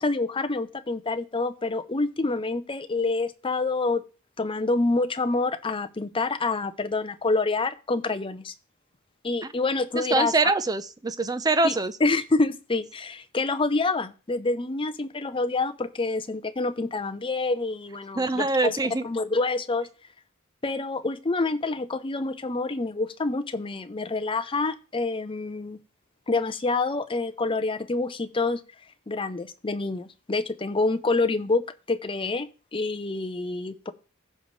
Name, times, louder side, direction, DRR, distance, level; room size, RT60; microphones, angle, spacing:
voice 1, 0.0-4.0 4.4-8.5 9.2-10.3 11.6-11.7 12.0-18.8 19.0-19.9 20.6-25.8 26.3-28.6 29.1-31.6 31.9-33.9, left 3 dB, 25° left, 10 dB, 0.6 m, -27 dB
voice 2, 9.9-11.9 18.2-19.1, right 3 dB, 20° right, 12 dB, 0.6 m, -24 dB
15.5 x 5.3 x 3.2 m, 0.34 s
head